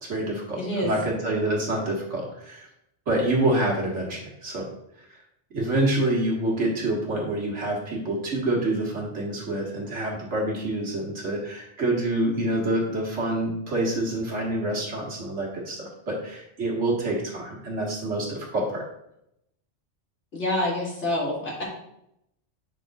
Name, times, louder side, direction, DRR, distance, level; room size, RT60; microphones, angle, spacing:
voice 1, 0.0-2.7 3.1-4.7 5.1-5.2 5.5-18.8, right 1 dB, 90° right, -2 dB, 2.2 m, -27 dB
voice 2, 0.6-0.9 20.3-21.6, left 1 dB, 80° left, -5 dB, 2.8 m, -27 dB
9.1 x 6.2 x 2.5 m, 0.79 s
omnidirectional pair, 1.2 m